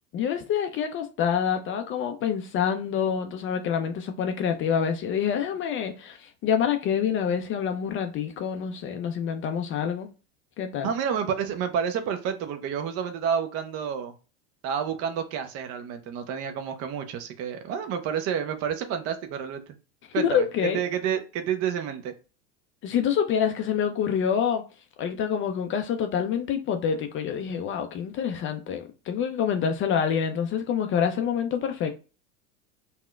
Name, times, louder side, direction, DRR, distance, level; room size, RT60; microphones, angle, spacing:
voice 1, 0.1-10.1 10.6-10.9 20.1-20.8 22.8-24.6 25.0-31.9, left 8 dB, 35° left, 0.4 m, -27 dB
voice 2, 10.8-14.1 14.6-19.7 20.1-20.4 20.7-22.1, right 8 dB, 40° right, 0.5 m, -29 dB
4.1 x 2.1 x 2.3 m
supercardioid pair, 105°, 39 cm